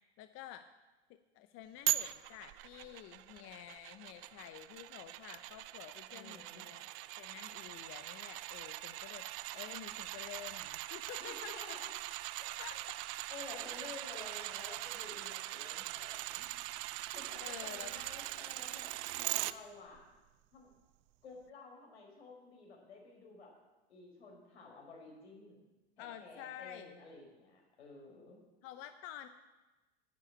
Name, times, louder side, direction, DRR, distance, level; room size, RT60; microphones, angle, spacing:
voice 1, 0.2-0.7 1.3-6.9 7.2-9.3 9.5-11.7 12.6-13.0 17.4-17.9 26.0-27.0 28.6-29.3, left 12 dB, 45° left, 9 dB, 0.8 m, -50 dB
sound 1, 1.9-19.5 20.0-20.1, right 18 dB, 45° right, 0.6 m, -41 dB
voice 2, 6.1-6.7 11.2-11.9 12.4-12.7 13.3-16.5 17.1-20.1 20.5-20.7 21.2-23.5 23.9-25.6 26.0-28.4, left 3 dB, 85° left, 0 dB, 4.5 m, -52 dB
10.5 x 8.4 x 8.7 m, 1.1 s
hypercardioid pair, 95°, 32 cm